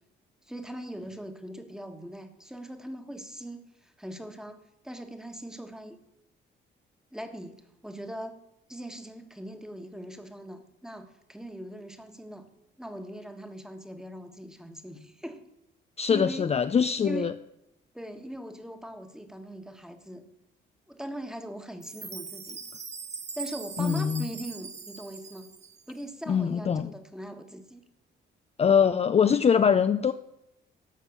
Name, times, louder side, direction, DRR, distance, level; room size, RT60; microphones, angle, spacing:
voice 1, 0.4-6.0 7.1-8.4 8.7-12.5 12.8-15.5 16.1-16.5 17.0-17.3 17.9-20.2 20.9-22.6 23.3-25.5 25.9-27.8, right 1 dB, 5° right, 8 dB, 1.4 m, -40 dB
voice 2, 16.0-17.3 23.8-24.3 26.3-26.9 28.6-30.1, left 7 dB, 30° left, 10 dB, 0.5 m, -23 dB
Chime, 21.8-26.0, right 5 dB, 35° right, 1.2 m, -41 dB
13.0 x 5.4 x 8.4 m, 0.83 s
cardioid pair, 90°, 20 cm